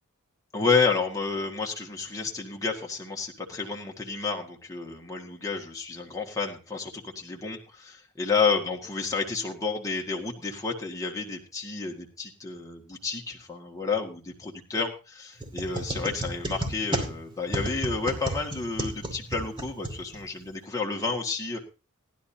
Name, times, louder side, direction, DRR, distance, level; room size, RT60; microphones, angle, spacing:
voice 1, 0.5-21.6, left 4 dB, 15° left, 0 dB, 1.7 m, -30 dB
sound 1, 15.4-20.5, right 1 dB, 25° right, 2.3 m, -33 dB
18.0 x 11.5 x 2.8 m, 0.31 s
head